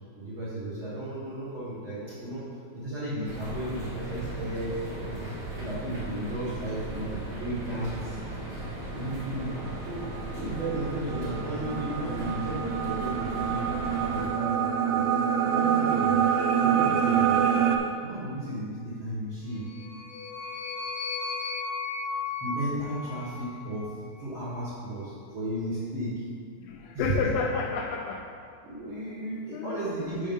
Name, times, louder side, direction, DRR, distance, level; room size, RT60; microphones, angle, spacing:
voice 1, 0.2-2.4 2.7-5.3 5.6-8.2 8.9-13.7 14.1-17.6 18.0-19.6 22.4-26.2 26.9-27.3 28.6-30.3, right 1 dB, 65° right, -11 dB, 1.2 m, -34 dB
sound 1, 3.2-14.3, right 1 dB, 40° right, 0.9 m, -37 dB
sound 2, 9.1-17.8, right 8 dB, 80° right, 1.9 m, -26 dB
sound 3, 19.6-23.9, left 4 dB, 65° left, 2.0 m, -35 dB
voice 2, 26.6-28.3 29.5-29.9 30.2-30.3, left 5 dB, 80° left, 2 dB, 2.2 m, -31 dB
6.3 x 5.5 x 5.3 m, 2.3 s
omnidirectional pair, 4.4 m